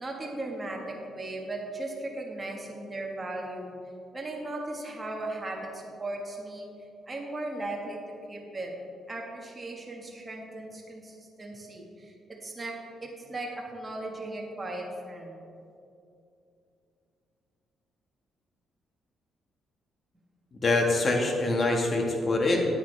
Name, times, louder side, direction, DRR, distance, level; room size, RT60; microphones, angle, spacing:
voice 1, 0.0-3.7 4.1-6.7 7.1-8.0 8.3-8.7 9.1-12.7 13.0-15.4, right 2 dB, 20° right, -1 dB, 1.4 m, -37 dB
voice 2, 20.6-22.7, left 2 dB, 35° left, 1 dB, 1.5 m, -24 dB
9.2 x 8.9 x 3.3 m, 2.6 s
cardioid pair, 90°, 0 cm